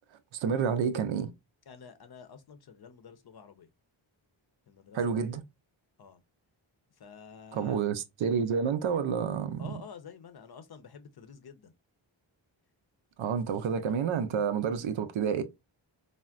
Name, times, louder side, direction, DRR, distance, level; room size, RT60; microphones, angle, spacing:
voice 1, 0.3-1.3 4.9-5.4 7.5-9.7 13.2-15.4, right 6 dB, 75° right, 0.6 m, -29 dB
voice 2, 1.7-3.7 4.7-5.4 6.0-6.2 7.0-7.8 9.6-11.7, left 6 dB, 50° left, 0.6 m, -49 dB
3.4 x 2.1 x 2.4 m
cardioid pair, 50°, 49 cm